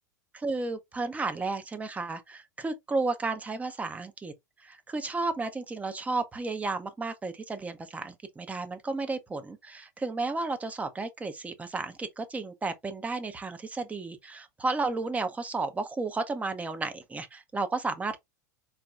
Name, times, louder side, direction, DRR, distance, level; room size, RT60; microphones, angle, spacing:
voice 1, 0.3-4.3 4.6-18.2, right 3 dB, 15° right, 0.7 m, -33 dB
4.2 x 3.0 x 2.3 m
hypercardioid pair, 90°, 10 cm